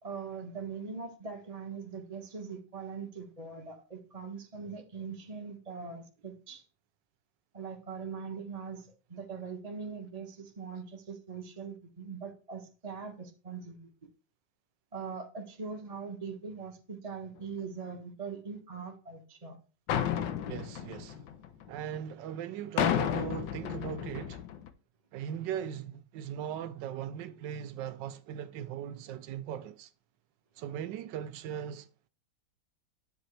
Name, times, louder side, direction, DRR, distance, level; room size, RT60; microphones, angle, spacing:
voice 1, 0.0-6.6 7.5-13.9 14.9-19.6, right 5 dB, 25° right, 1.1 m, -41 dB
sound 1, 19.9-21.9 22.8-24.7, left 9 dB, 90° left, 1.5 m, -32 dB
voice 2, 20.5-21.2 21.7-24.4 25.1-29.9 30.6-31.9, right 9 dB, 85° right, 1.3 m, -39 dB
10.5 x 7.6 x 3.2 m
omnidirectional pair, 1.9 m